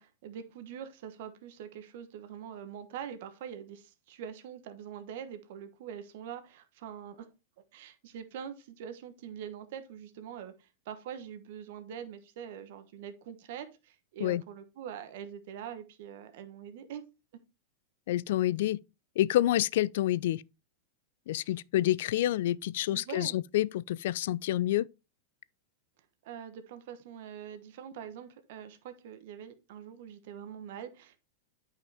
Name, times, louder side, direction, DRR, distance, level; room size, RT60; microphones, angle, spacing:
voice 1, 0.0-7.3 7.7-17.0 21.4-21.6 22.9-23.4 26.2-31.2, right 8 dB, 65° right, 1.1 m, -44 dB
voice 2, 18.1-18.8 19.2-20.4 21.3-24.9, left 14 dB, 65° left, 0.3 m, -28 dB
8.9 x 5.6 x 3.4 m
hypercardioid pair, 110°, 0 cm